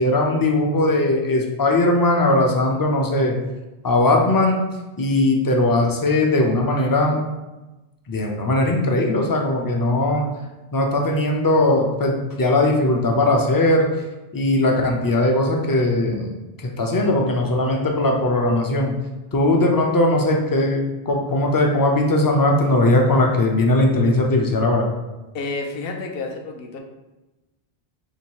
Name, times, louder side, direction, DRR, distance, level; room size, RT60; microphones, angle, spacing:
voice 1, 0.0-3.3 3.8-4.6 5.0-7.2 8.1-10.2 10.7-13.9 14.3-16.3 16.8-18.9 19.3-24.9, left 2 dB, 30° left, 1 dB, 0.4 m, -19 dB
voice 2, 25.3-26.8, left 3 dB, 70° left, 3 dB, 0.8 m, -30 dB
3.1 x 2.8 x 4.6 m, 1.1 s
omnidirectional pair, 1.0 m